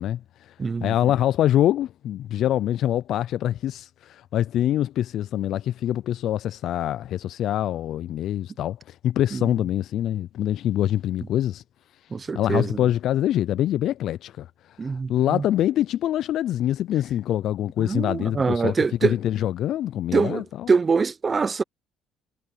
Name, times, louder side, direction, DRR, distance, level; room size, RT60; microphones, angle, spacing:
voice 1, 0.0-0.5 0.8-11.6 12.0-18.8 19.0-20.7, left 12 dB, 65° left, 0.3 m, -25 dB
voice 2, 0.6-0.9 9.3-9.4 12.1-12.8 14.8-15.4 17.8-19.2 20.1-21.6, right 4 dB, 25° right, 0.7 m, -24 dB
cardioid pair, 110°, 0 cm